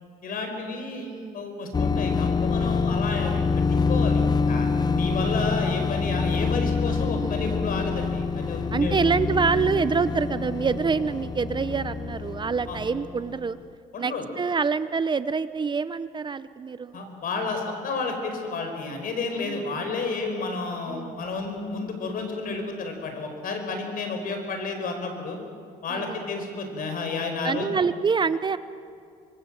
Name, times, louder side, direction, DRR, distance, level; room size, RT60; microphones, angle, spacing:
voice 1, 0.2-3.4 3.7-9.0 12.7-12.8 13.9-14.2 16.9-25.4 25.8-27.7, left 3 dB, 55° left, 5 dB, 5.1 m, -31 dB
voice 2, 1.0-1.4 7.2-7.6 8.7-13.6 14.0-17.0 19.4-19.6 20.9-21.2 25.9-26.2 27.4-28.6, right 5 dB, 25° right, 14 dB, 0.7 m, -26 dB
sound 1, 1.7-13.4, left 4 dB, 25° left, 0.8 m, -26 dB
25.5 x 22.5 x 7.6 m, 2.3 s
cardioid pair, 110°, 17 cm